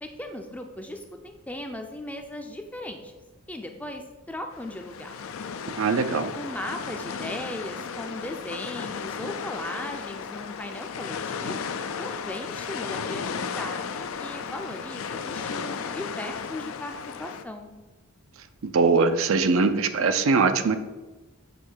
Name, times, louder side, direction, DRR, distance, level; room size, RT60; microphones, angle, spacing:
voice 1, 0.0-3.1 3.5-4.0 4.3-5.1 6.3-16.9 17.2-17.7, left 1 dB, 5° left, 4 dB, 0.5 m, -37 dB
sound 1, 4.5-17.4, left 6 dB, 70° left, 0.4 m, -34 dB
voice 2, 5.8-6.3 18.6-20.8, right 4 dB, 65° right, 9 dB, 0.5 m, -21 dB
7.7 x 3.1 x 6.2 m, 1.2 s
head